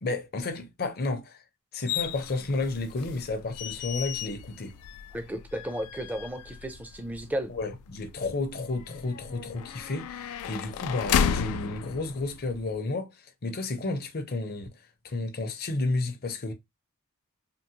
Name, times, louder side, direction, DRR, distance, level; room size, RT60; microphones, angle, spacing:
voice 1, 0.0-1.4 1.7-4.7 7.5-13.1 13.4-14.7 15.0-16.5, left 3 dB, 45° left, 0.7 m, -32 dB
sound 1, 1.9-12.7, left 8 dB, 80° left, 0.3 m, -34 dB
voice 2, 5.1-7.5, right 1 dB, 5° right, 0.4 m, -34 dB
3.8 x 2.0 x 2.8 m
head